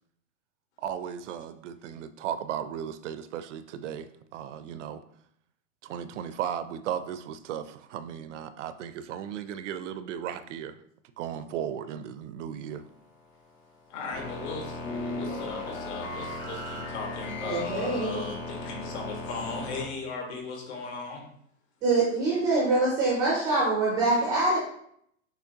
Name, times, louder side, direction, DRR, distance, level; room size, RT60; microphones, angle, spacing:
voice 1, 0.8-5.0 5.8-10.8 11.2-12.8, right 9 dB, 70° right, 12 dB, 0.5 m, -36 dB
sound 1, 12.7-19.9, left 2 dB, 75° left, 1.4 m, -36 dB
voice 2, 13.9-21.2, left 4 dB, 60° left, 1 dB, 1.5 m, -37 dB
voice 3, 17.4-18.2 21.8-24.6, right 2 dB, 10° right, -5 dB, 0.4 m, -24 dB
6.2 x 3.1 x 2.8 m, 0.69 s
supercardioid pair, 165°, 38 cm